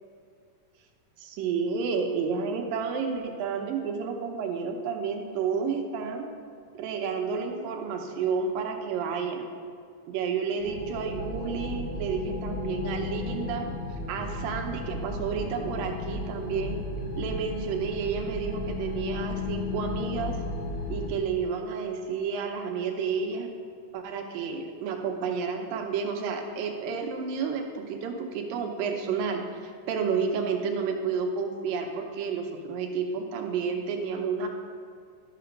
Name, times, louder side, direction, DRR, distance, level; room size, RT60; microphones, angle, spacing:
voice 1, 1.2-6.3 6.7-9.5 10.1-13.7 14.1-16.8 17.2-20.4 20.9-23.5 23.9-34.5, right 5 dB, 85° right, 3 dB, 2.5 m, -31 dB
sound 1, 10.6-21.1, left 2 dB, 40° left, 1.3 m, -34 dB
13.0 x 5.8 x 5.1 m, 2.3 s
omnidirectional pair, 3.9 m